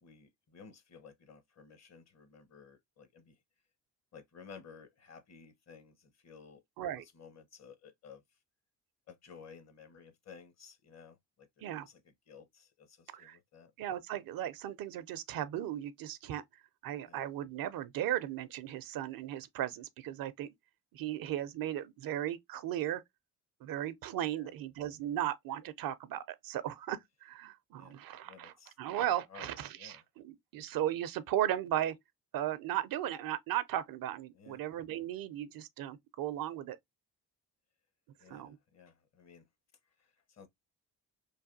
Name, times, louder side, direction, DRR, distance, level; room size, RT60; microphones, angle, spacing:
voice 1, 0.0-3.3 4.1-6.6 7.0-8.2 9.1-11.5 11.8-12.0 12.3-13.7 17.1-17.2 24.3-24.5 27.8-28.0 28.2-28.7 29.3-29.5 29.8-30.0 34.3-34.6 38.2-39.4 40.3-40.5, left 6 dB, 45° left, 0.8 m, -55 dB
voice 2, 13.8-16.4 16.8-20.5 20.9-23.0 23.6-31.9 32.3-36.8 38.3-38.6, right 12 dB, 60° right, 0.5 m, -36 dB
3.2 x 2.3 x 2.5 m
supercardioid pair, 65°, 39 cm